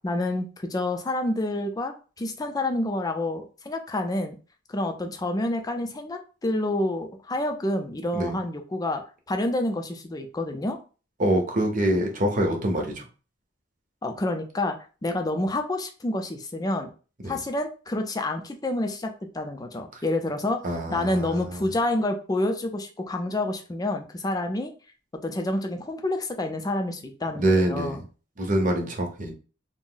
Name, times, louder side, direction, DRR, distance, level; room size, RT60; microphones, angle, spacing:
voice 1, 0.0-4.4 4.7-9.0 9.3-10.8 14.0-16.9 17.3-24.7 25.2-28.0, left 1 dB, 20° left, 5 dB, 0.4 m, -28 dB
voice 2, 11.2-13.0 17.2-17.4 20.6-21.6 27.4-28.0 28.4-29.3, right 1 dB, 45° right, 3 dB, 0.7 m, -25 dB
2.5 x 2.0 x 3.7 m, 0.35 s
head